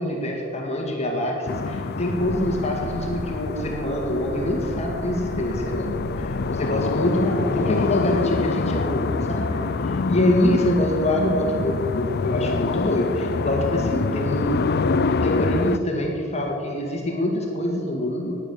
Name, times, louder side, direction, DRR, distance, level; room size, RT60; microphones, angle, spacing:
voice 1, 0.0-14.8 15.2-18.4, left 1 dB, 30° left, 0 dB, 2.0 m, -25 dB
sound 1, 1.5-15.8, left 4 dB, 50° left, 0.5 m, -26 dB
sound 2, 2.2-8.2, right 1 dB, 40° right, 0.9 m, -37 dB
11.0 x 10.0 x 8.4 m, 2.7 s
head